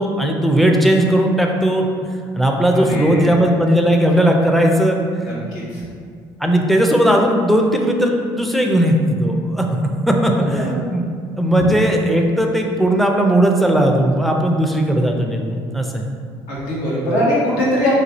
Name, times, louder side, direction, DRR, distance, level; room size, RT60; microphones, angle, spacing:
voice 1, 0.0-1.9 2.3-5.0 5.7-5.8 6.4-9.7 10.1-11.0 11.4-16.1, right 1 dB, ahead, 2 dB, 0.5 m, -17 dB
voice 2, 2.9-3.3 5.2-5.8 10.3-10.7 11.5-11.7 16.5-17.9, left 1 dB, 75° left, -7 dB, 1.1 m, -21 dB
3.1 x 2.3 x 3.9 m, 2.1 s
hypercardioid pair, 65°, 12 cm